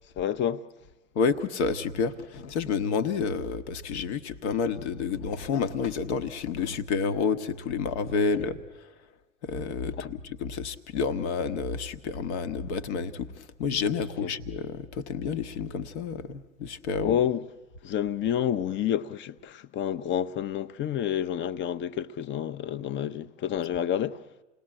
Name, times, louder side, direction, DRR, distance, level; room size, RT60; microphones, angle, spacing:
voice 1, 0.2-0.7 10.0-10.1 14.2-14.3 17.0-17.4 17.8-24.3, left 10 dB, 30° left, 0.8 m, -29 dB
voice 2, 1.1-8.9 9.4-17.2, left 5 dB, 65° left, 1.3 m, -29 dB
28.5 x 19.5 x 8.9 m
figure-of-eight pair, 85°, 37 cm